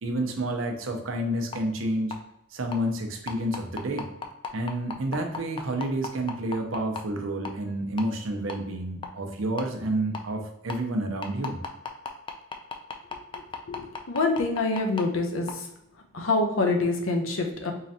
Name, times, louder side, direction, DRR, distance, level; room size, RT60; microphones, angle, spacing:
voice 1, 0.0-2.2 2.5-4.1 4.5-11.6, right 1 dB, 90° right, 4 dB, 0.7 m, -29 dB
sound 1, 1.5-1.6 2.1-2.2 2.7-2.8 3.3-7.0 7.4-7.6 8.0-8.1 8.5-8.6 9.0-9.1 9.6-9.7 10.1-10.2 10.7-10.8 11.2-15.0 15.5-15.6, left 5 dB, 25° left, 0.4 m, -33 dB
voice 2, 13.7-15.5 16.1-17.7, left 3 dB, 85° left, 3 dB, 0.7 m, -26 dB
3.8 x 3.1 x 2.7 m, 0.84 s
head